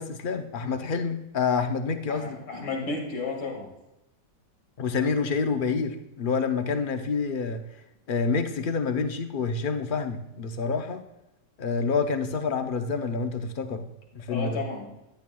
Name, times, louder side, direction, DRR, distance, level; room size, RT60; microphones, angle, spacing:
voice 1, 0.0-2.4 4.8-7.6 8.1-11.0 11.6-13.8 14.1-14.6, left 5 dB, 60° left, 7 dB, 0.5 m, -28 dB
voice 2, 2.1-3.7 14.3-14.9, left 4 dB, 80° left, 0 dB, 2.8 m, -33 dB
14.5 x 11.0 x 2.3 m, 0.92 s
omnidirectional pair, 1.8 m